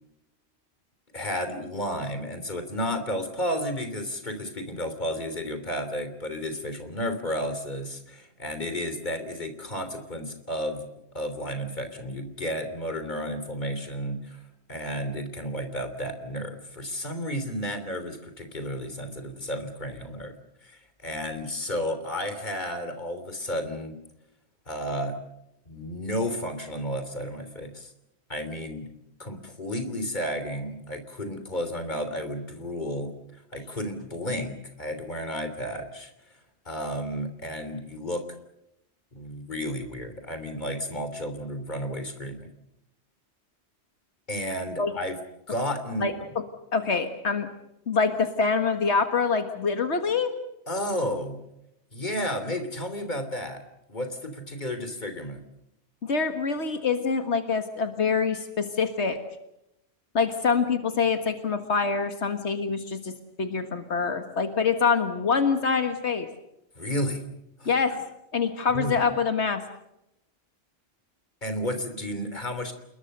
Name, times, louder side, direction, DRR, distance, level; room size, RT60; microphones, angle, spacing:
voice 1, 1.1-10.9 11.1-14.4 14.7-20.3 20.6-24.0 24.7-25.2 25.7-27.9 28.3-28.9 29.2-36.1 36.6-38.3 39.1-42.5 44.3-45.2 45.5-46.1 50.7-51.4 51.9-53.6 53.9-55.4 66.7-67.2 67.6-67.7 68.7-69.0 71.4-72.7, equal, 45° left, 9 dB, 3.4 m, -32 dB
voice 2, 46.7-47.5 47.9-50.3 56.0-59.2 60.1-66.3 67.7-68.0 68.3-69.6, left 5 dB, 85° left, 7 dB, 1.9 m, -25 dB
29.0 x 21.0 x 6.7 m, 0.84 s
omnidirectional pair, 1.1 m